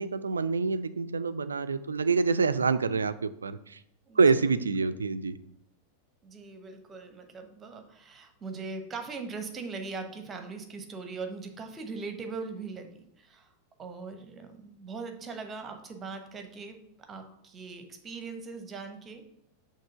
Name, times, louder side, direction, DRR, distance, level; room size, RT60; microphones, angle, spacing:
voice 1, 0.0-3.8 4.2-5.4, right 4 dB, 75° right, 12 dB, 0.4 m, -26 dB
voice 2, 6.2-12.9 13.2-13.5 13.8-16.8 17.1-19.3, right 4 dB, 20° right, 6 dB, 0.9 m, -40 dB
6.5 x 3.1 x 5.5 m, 0.73 s
figure-of-eight pair, 90°, 0 cm